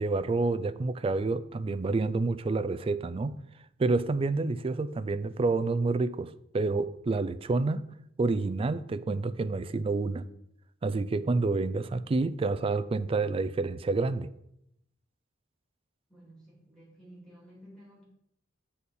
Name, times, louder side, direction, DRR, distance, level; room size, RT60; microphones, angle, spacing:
voice 1, 0.0-3.4 3.8-7.9 8.2-10.3 10.8-14.3, right 3 dB, 30° right, 0.3 m, -28 dB
voice 2, 16.1-18.0, equal, 5° left, 3.2 m, -53 dB
7.0 x 4.2 x 6.4 m
head